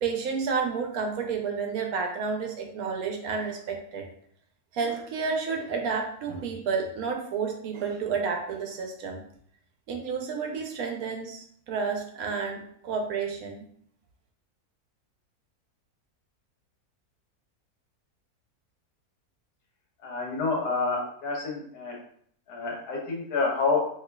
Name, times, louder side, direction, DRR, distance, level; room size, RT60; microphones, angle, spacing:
voice 1, 0.0-4.1 4.7-9.2 9.9-13.7, right 5 dB, 75° right, 3 dB, 1.0 m, -30 dB
voice 2, 20.0-22.0 22.5-23.8, left 4 dB, 85° left, -1 dB, 1.5 m, -28 dB
4.3 x 2.7 x 2.2 m, 0.64 s
omnidirectional pair, 1.6 m